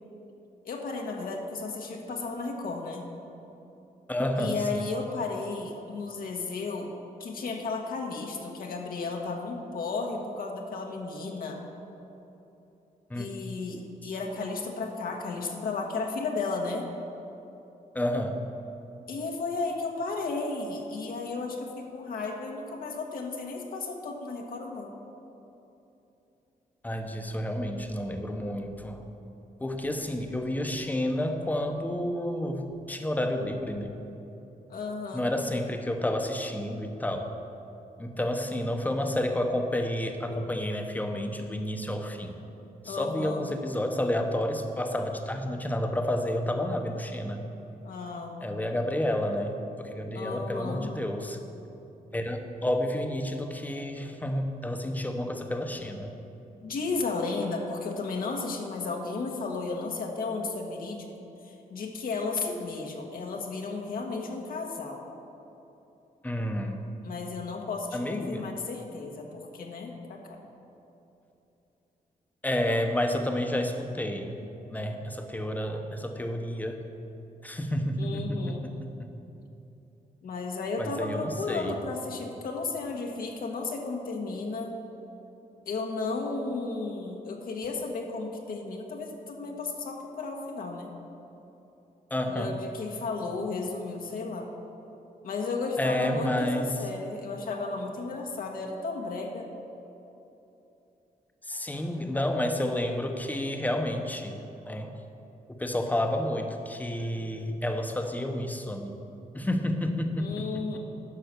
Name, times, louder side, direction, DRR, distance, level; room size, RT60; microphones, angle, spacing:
voice 1, 0.6-3.1 4.4-6.9 7.2-11.6 13.2-16.9 19.1-24.9 34.7-35.3 42.8-43.5 47.8-48.4 50.1-50.9 56.6-61.1 61.4-65.0 67.0-70.4 78.0-78.7 80.2-84.7 85.7-90.9 92.3-94.5 95.2-99.5 110.2-110.8, left 3 dB, 70° left, 1 dB, 1.3 m, -34 dB
voice 2, 4.1-4.8 13.1-13.3 17.9-18.4 26.8-29.0 29.6-33.9 35.1-37.3 38.0-42.4 42.8-47.4 48.4-51.4 52.1-56.1 66.2-66.8 67.9-68.4 72.4-74.4 74.7-76.8 77.4-79.1 80.8-81.7 92.1-92.5 95.8-96.7 101.4-104.4 104.7-104.9 105.5-109.0 109.3-110.8, left 1 dB, 10° left, 5 dB, 0.9 m, -30 dB
10.5 x 5.9 x 6.7 m, 3.0 s
cardioid pair, 110°, 15 cm